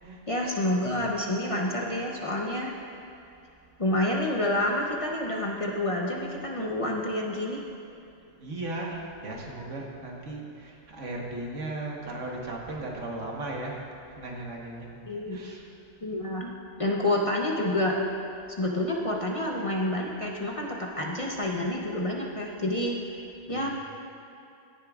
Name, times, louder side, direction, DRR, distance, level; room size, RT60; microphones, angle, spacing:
voice 1, 0.3-2.7 3.8-7.6 15.1-15.4 16.0-16.5 16.8-17.9 18.6-23.0 23.5-23.7, left 1 dB, 30° left, -2 dB, 0.8 m, -28 dB
voice 2, 8.4-13.8 14.2-14.9 15.3-15.7 23.5-23.7, right 2 dB, 80° right, -1 dB, 1.7 m, -36 dB
16.5 x 10.5 x 2.4 m, 2.5 s
omnidirectional pair, 1.3 m